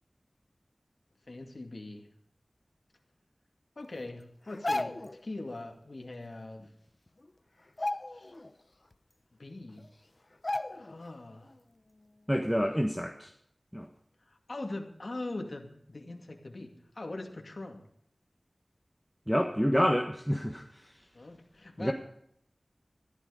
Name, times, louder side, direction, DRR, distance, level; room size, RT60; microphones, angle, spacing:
voice 1, 1.3-2.1 3.8-5.0 5.2-6.7 8.1-8.3 9.4-9.9 10.7-11.5 14.3-17.8 21.1-21.9, left 2 dB, 65° left, 2 dB, 2.3 m, -42 dB
sound 1, 4.5-5.2 6.6-6.7 7.1-7.3 7.7-8.5 8.9-9.0 9.8-9.9 10.4-11.1 11.4-11.6, left 2 dB, 45° left, 0.8 m, -34 dB
voice 2, 12.3-13.3 13.7-13.9 19.3-20.9 21.8-21.9, equal, ahead, 4 dB, 1.4 m, -28 dB
14.5 x 12.0 x 5.0 m, 0.70 s
wide cardioid pair, 50°, 0 cm